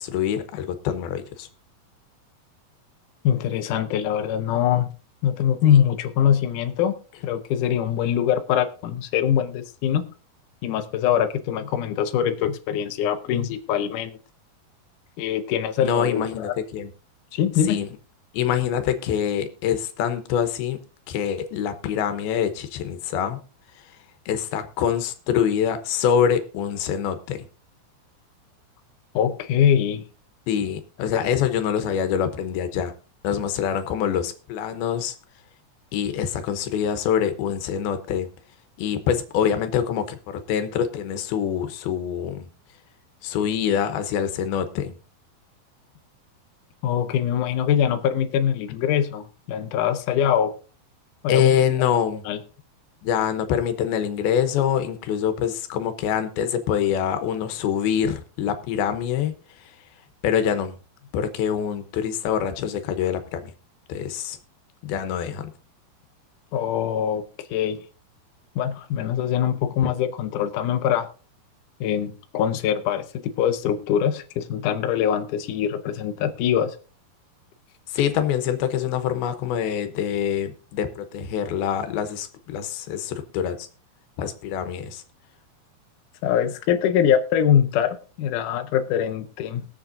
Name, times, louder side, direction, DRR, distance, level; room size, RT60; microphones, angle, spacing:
voice 1, 0.0-1.5 5.7-5.8 15.8-16.9 17.7-17.9 18.3-20.8 21.1-23.4 24.3-27.5 30.5-32.9 33.2-35.2 35.9-38.3 38.8-42.5 43.2-44.9 51.3-52.2 53.0-59.7 60.2-60.8 61.1-63.5 63.9-64.4 64.8-65.5 69.8-69.9 77.9-83.7 84.2-85.0, left 8 dB, 90° left, 9 dB, 2.9 m, -25 dB
voice 2, 3.2-4.9 5.2-6.9 7.2-10.1 10.6-14.2 15.2-16.5 17.3-17.8 29.1-30.0 46.8-50.5 51.2-51.5 52.3-52.4 66.5-67.2 67.5-67.8 68.6-71.1 71.8-76.8 86.2-89.7, left 9 dB, 70° left, 6 dB, 2.2 m, -23 dB
22.5 x 7.5 x 2.6 m, 0.37 s
omnidirectional pair, 4.2 m